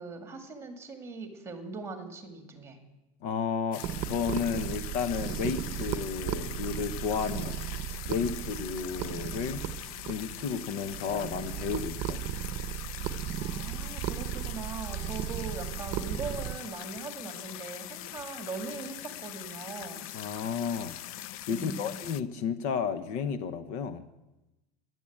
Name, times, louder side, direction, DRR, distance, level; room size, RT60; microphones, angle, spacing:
voice 1, 0.0-2.8 13.4-20.1 21.5-22.0, right 4 dB, 15° right, 6 dB, 2.1 m, -40 dB
voice 2, 3.2-9.6 10.0-12.3 20.1-24.0, left 6 dB, 50° left, 11 dB, 1.0 m, -33 dB
sound 1, 3.7-22.2, left 13 dB, 70° left, 0.7 m, -42 dB
sound 2, 3.8-16.6, right 12 dB, 40° right, 0.9 m, -36 dB
15.5 x 11.0 x 8.6 m, 1.0 s
supercardioid pair, 160°, 19 cm